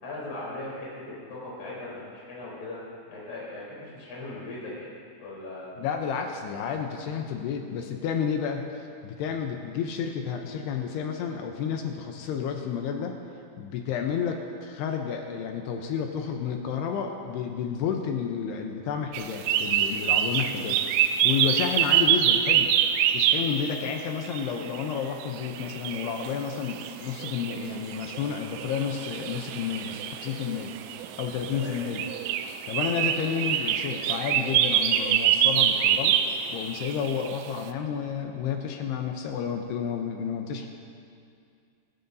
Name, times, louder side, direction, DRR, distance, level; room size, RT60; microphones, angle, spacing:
voice 1, 0.0-2.8 3.1-4.9 5.2-5.7 6.4-6.6 20.6-20.8 31.5-31.8, left 2 dB, 30° left, -7 dB, 4.3 m, -39 dB
voice 2, 5.8-8.6 9.0-13.2 13.6-20.8 21.2-22.7 23.1-30.7 31.2-32.0 32.7-36.2 36.5-40.7, left 7 dB, 75° left, 3 dB, 2.6 m, -31 dB
sound 1, 19.1-23.6 24.2-37.5, right 10 dB, 85° right, 2.8 m, -26 dB
25.5 x 11.5 x 2.7 m, 2.4 s
omnidirectional pair, 5.2 m